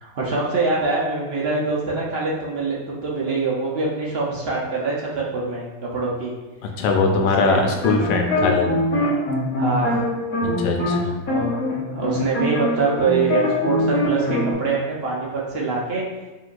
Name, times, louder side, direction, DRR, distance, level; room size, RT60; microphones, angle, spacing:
voice 1, 0.0-6.3 7.1-7.6 9.6-10.1 11.2-11.5 11.9-16.0, right 3 dB, 55° right, -4 dB, 0.7 m, -24 dB
voice 2, 6.6-8.7 10.6-11.1, left 4 dB, 80° left, 2 dB, 1.3 m, -21 dB
sound 1, 7.7-11.0 11.3-14.5, left 1 dB, 55° left, 1.5 m, -23 dB
5.4 x 2.9 x 2.5 m, 1.2 s
omnidirectional pair, 1.9 m